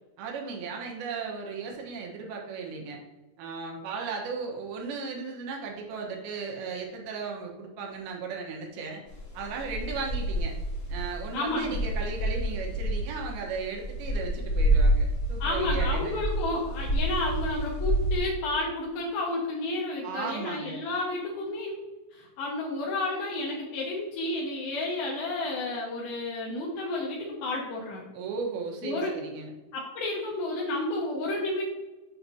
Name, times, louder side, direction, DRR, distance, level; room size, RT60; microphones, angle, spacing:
voice 1, 0.2-3.0 3.4-9.0 9.3-10.5 10.9-16.2 20.0-20.8 28.1-29.5, right 5 dB, 85° right, 0 dB, 3.0 m, -36 dB
sound 1, 9.1-18.2, right 1 dB, 55° left, 1.4 m, -28 dB
voice 2, 11.3-11.8 15.4-21.8 22.1-28.1 28.8-29.1 29.7-31.6, left 2 dB, 75° left, -4 dB, 2.8 m, -31 dB
7.8 x 2.8 x 5.9 m, 1.1 s
omnidirectional pair, 4.3 m